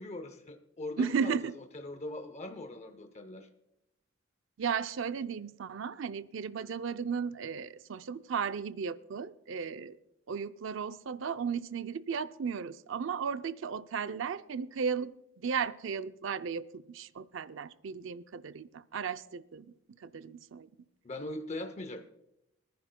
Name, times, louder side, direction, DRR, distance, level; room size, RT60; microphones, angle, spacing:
voice 1, 0.0-1.4 1.7-3.5 21.0-22.1, left 2 dB, 35° left, 0.7 m, -41 dB
voice 2, 1.0-1.5 4.6-10.0 10.3-15.1 15.4-19.7 20.0-20.7, right 6 dB, 70° right, 0.5 m, -35 dB
24.0 x 10.5 x 2.2 m
head